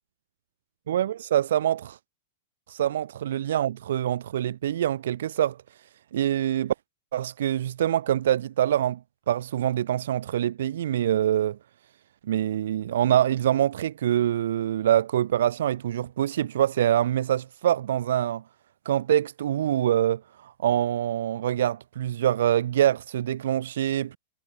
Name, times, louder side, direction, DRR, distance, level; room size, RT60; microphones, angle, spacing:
voice 1, 0.9-2.0 2.7-5.6 6.1-6.7 7.1-9.0 9.3-11.6 12.3-18.4 18.8-24.2, right 11 dB, 75° right, 1.1 m, -25 dB
supercardioid pair, 155°, 0 cm